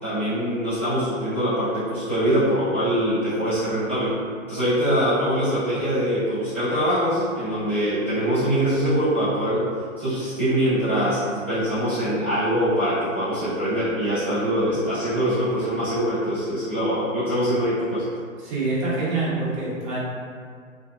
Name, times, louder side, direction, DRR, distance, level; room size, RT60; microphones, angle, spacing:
voice 1, 0.0-4.1 4.5-9.7 10.0-18.0, equal, 10° left, -18 dB, 0.3 m, -23 dB
voice 2, 18.4-20.0, right 3 dB, 25° right, -9 dB, 0.7 m, -25 dB
2.6 x 2.1 x 2.3 m, 2.1 s
figure-of-eight pair, 125°, 40 cm